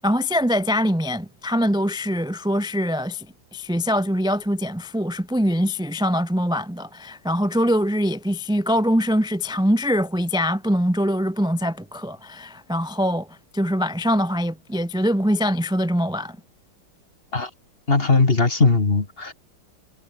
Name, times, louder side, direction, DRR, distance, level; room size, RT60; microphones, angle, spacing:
voice 1, 0.0-3.3 3.5-16.4, equal, 5° right, 1.2 m, -23 dB
voice 2, 17.9-19.3, left 3 dB, 30° left, 2.3 m, -19 dB
omnidirectional pair, 2.1 m